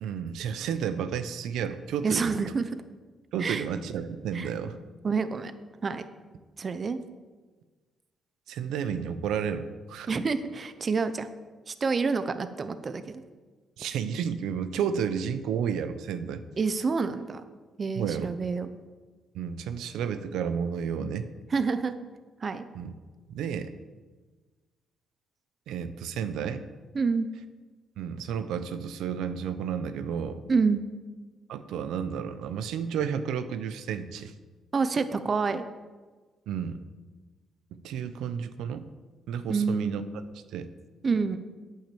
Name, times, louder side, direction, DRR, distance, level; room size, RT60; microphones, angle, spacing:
voice 1, 0.0-2.4 3.3-4.8 8.5-10.1 13.8-16.4 18.0-18.3 19.3-21.3 22.7-22.9 23.3-23.7 25.7-26.7 28.0-30.4 31.5-34.3 36.5-36.8 37.8-38.8 39.3-40.0 40.5-40.7, right 7 dB, 85° right, 11 dB, 0.8 m, -31 dB
voice 2, 2.0-2.7 3.4-3.7 4.3-4.5 5.0-5.5 5.8-6.0 6.6-7.0 10.1-11.3 11.7-13.2 16.6-17.4 17.8-18.7 21.5-21.9 22.4-22.6 26.9-27.3 30.5-30.8 34.7-35.6 39.5-39.9 41.0-41.4, right 4 dB, 40° right, 11 dB, 0.8 m, -27 dB
9.1 x 8.6 x 7.0 m, 1.3 s
cardioid pair, 90°, 0 cm